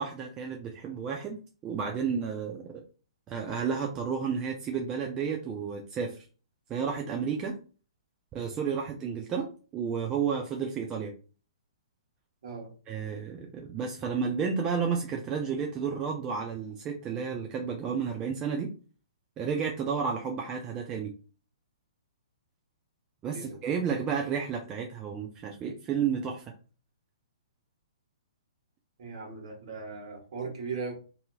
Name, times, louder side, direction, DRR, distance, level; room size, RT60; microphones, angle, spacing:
voice 1, 0.0-1.4 1.6-2.7 3.3-6.2 6.7-7.6 8.3-11.1 12.9-18.7 19.4-21.1 23.2-26.5, right 6 dB, 20° right, 0.4 m, -31 dB
voice 2, 29.0-30.9, right 4 dB, 55° right, 1.4 m, -38 dB
2.8 x 2.7 x 2.3 m
figure-of-eight pair, 125°, 3 cm